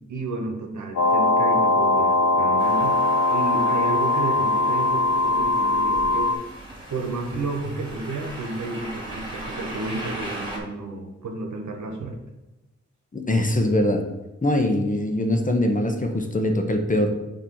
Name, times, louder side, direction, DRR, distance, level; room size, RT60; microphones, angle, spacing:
voice 1, 0.1-3.0 3.3-6.3 6.9-12.1, right 2 dB, 80° right, 3 dB, 1.1 m, -31 dB
sound 1, 0.9-6.3, left 2 dB, 75° left, 1.0 m, -21 dB
sound 2, 2.6-10.6, right 1 dB, 15° right, 2.3 m, -38 dB
voice 2, 13.1-14.0 14.4-17.1, left 1 dB, 25° left, 4 dB, 1.0 m, -22 dB
7.3 x 3.0 x 5.5 m, 1.1 s
cardioid pair, 65°, 29 cm